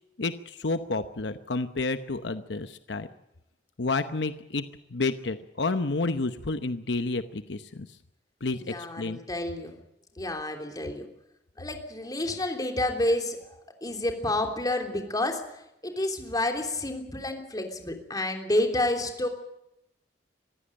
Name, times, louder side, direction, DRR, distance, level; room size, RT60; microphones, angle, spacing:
voice 1, 0.2-3.1 3.8-4.6 4.9-7.9 8.4-8.6 9.0-9.2, left 3 dB, 75° left, 10 dB, 0.9 m, -30 dB
voice 2, 8.5-9.8 10.2-11.1 11.6-19.3, left 1 dB, 20° left, 4 dB, 3.3 m, -29 dB
23.5 x 15.5 x 8.9 m, 0.86 s
head